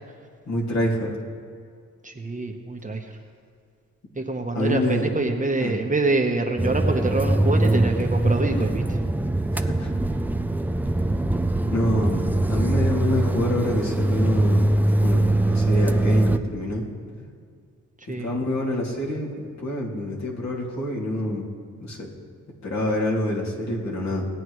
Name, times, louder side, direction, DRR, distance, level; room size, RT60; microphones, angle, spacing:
voice 1, 0.5-1.1 4.5-5.1 5.6-5.7 9.5-9.9 11.6-14.7 15.0-16.8 18.2-21.5 21.8-22.1 22.6-24.3, left 1 dB, 55° left, -3 dB, 2.7 m, -26 dB
voice 2, 2.0-3.1 4.1-9.0 18.1-18.4, right 2 dB, 25° right, 3 dB, 1.2 m, -26 dB
sound 1, 6.6-16.4, right 1 dB, 5° right, 0.5 m, -22 dB
18.5 x 9.1 x 3.2 m, 2.2 s
cardioid pair, 60°, 33 cm